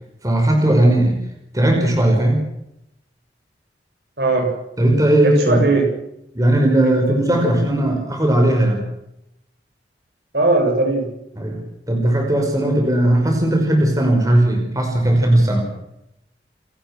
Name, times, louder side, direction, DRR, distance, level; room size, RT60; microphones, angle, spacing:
voice 1, 0.2-1.2 1.5-2.4 4.8-5.7 6.3-8.8 11.4-11.6 11.9-15.7, right 1 dB, 20° right, 2 dB, 5.6 m, -17 dB
voice 2, 4.2-4.5 5.2-5.9 6.8-7.4 10.3-11.1, right 2 dB, 65° right, 3 dB, 7.1 m, -19 dB
29.0 x 14.5 x 6.2 m, 0.81 s
head